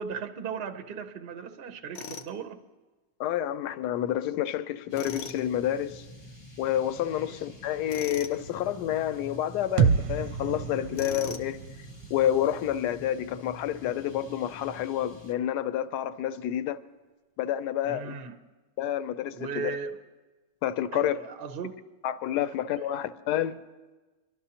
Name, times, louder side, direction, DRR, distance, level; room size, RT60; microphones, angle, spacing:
voice 1, 0.0-2.6 7.2-7.4 17.8-18.3 19.3-20.0 20.9-21.8 22.8-22.9, right 5 dB, 50° right, 0.7 m, -37 dB
Tools, 1.9-2.3 4.9-5.4 7.9-8.4 10.9-11.5, left 5 dB, 60° left, 0.8 m, -39 dB
voice 2, 3.2-6.0 6.6-11.6 12.1-16.8 17.4-18.1 18.8-19.7 20.6-21.2 22.0-23.6, left 11 dB, 75° left, 1.1 m, -29 dB
sound 1, 4.9-15.3, equal, 30° left, 0.5 m, -48 dB
sound 2, 9.8-13.6, right 6 dB, 75° right, 1.0 m, -29 dB
24.5 x 12.0 x 2.9 m
omnidirectional pair, 1.9 m